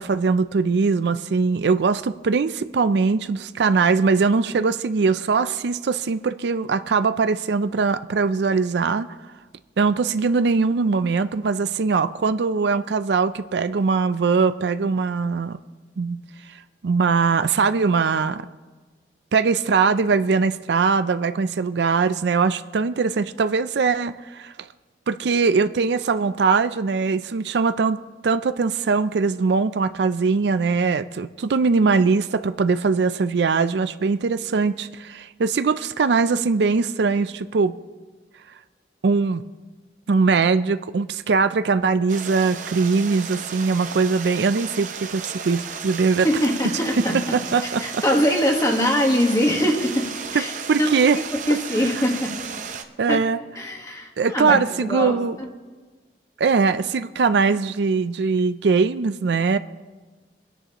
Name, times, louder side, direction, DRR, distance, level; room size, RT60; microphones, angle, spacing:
voice 1, 0.0-9.1 9.8-15.6 16.0-16.2 16.8-18.5 19.3-24.5 25.1-28.0 28.2-37.8 39.0-39.4 40.1-46.3 47.3-48.0 50.7-51.2 53.0-53.4 54.2-55.4 56.4-59.6, right 4 dB, 75° right, 12 dB, 0.4 m, -21 dB
Stream, 42.1-52.8, right 6 dB, 45° right, 0.8 m, -34 dB
voice 2, 46.2-47.4 47.8-50.5 50.8-52.4 53.1-53.2 53.5-55.5, equal, 20° left, 2 dB, 1.5 m, -23 dB
23.5 x 10.0 x 3.0 m, 1.3 s
head